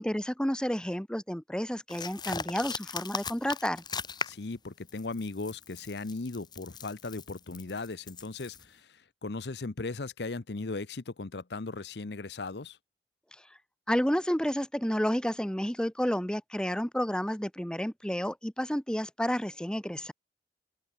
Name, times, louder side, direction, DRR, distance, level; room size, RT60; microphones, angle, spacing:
voice 1, 0.0-3.8 13.9-20.1, equal, 5° left, 0.9 m, -30 dB
sound 1, 1.9-4.5 4.9-8.7, left 5 dB, 25° left, 2.9 m, -39 dB
voice 2, 4.2-12.8, left 3 dB, 75° left, 0.8 m, -37 dB
open air
head